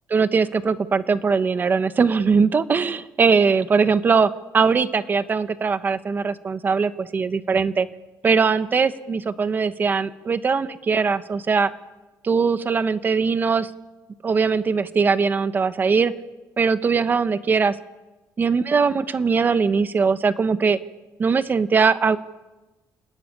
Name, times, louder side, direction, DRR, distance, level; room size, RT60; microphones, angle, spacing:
voice 1, 0.1-7.9 8.2-11.7 12.2-13.7 14.2-16.1 16.6-17.8 18.4-20.8 21.2-22.2, right 5 dB, 25° right, 12 dB, 0.8 m, -20 dB
28.5 x 18.5 x 9.9 m, 1.1 s
cardioid pair, 180°, 7 cm